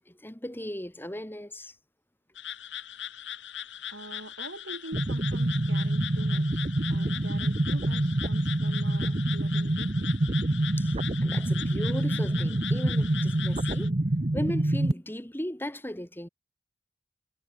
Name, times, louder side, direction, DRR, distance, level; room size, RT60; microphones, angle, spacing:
voice 1, 0.1-1.7 10.8-10.9 11.2-14.0 14.3-16.3, equal, 10° left, 3.4 m, -37 dB
sound 1, 2.4-13.9, left 11 dB, 80° left, 4.1 m, -40 dB
voice 2, 3.9-6.6 6.9-10.2, right 1 dB, 90° right, 5.4 m, -44 dB
sound 2, 4.9-14.9, right 1 dB, 35° right, 1.0 m, -27 dB
head